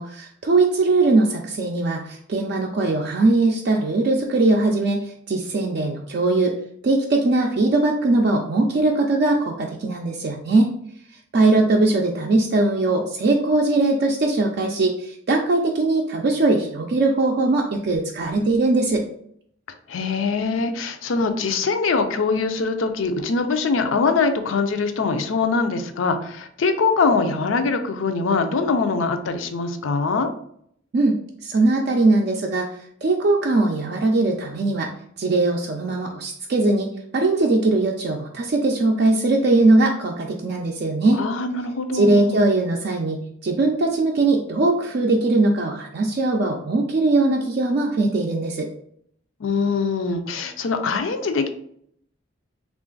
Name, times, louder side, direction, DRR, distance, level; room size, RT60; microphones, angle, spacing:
voice 1, 0.0-6.5 6.8-10.7 11.3-19.0 30.9-31.2 31.4-32.7 33.0-34.9 35.2-41.2 41.9-48.7, right 2 dB, 50° right, 0 dB, 0.4 m, -20 dB
voice 2, 19.9-30.3 41.2-42.4 49.4-51.5, left 4 dB, 80° left, 8 dB, 0.5 m, -23 dB
3.2 x 2.5 x 3.7 m, 0.67 s
head